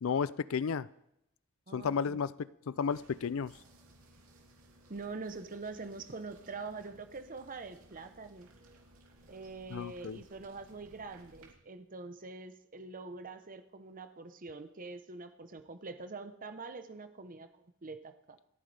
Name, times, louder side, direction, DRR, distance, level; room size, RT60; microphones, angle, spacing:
voice 1, 0.0-0.9 1.7-3.5 9.7-10.2, left 6 dB, 65° left, 19 dB, 0.4 m, -33 dB
voice 2, 1.7-2.2 4.9-8.5 9.3-17.5 17.8-18.4, right 3 dB, 40° right, 9 dB, 0.9 m, -44 dB
sound 1, 2.9-11.5, right 1 dB, 75° right, 2.8 m, -60 dB
27.5 x 9.3 x 3.4 m, 0.81 s
head